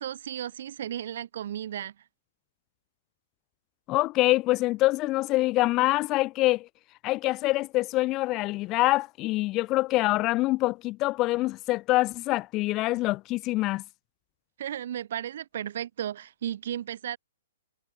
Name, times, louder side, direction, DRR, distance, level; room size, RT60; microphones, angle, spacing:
voice 1, 0.0-1.9 14.6-17.2, right 10 dB, 55° right, 8.0 m, -34 dB
voice 2, 3.9-6.7 7.0-13.8, left 19 dB, 30° left, 1.4 m, -25 dB
figure-of-eight pair, 115°, 0 cm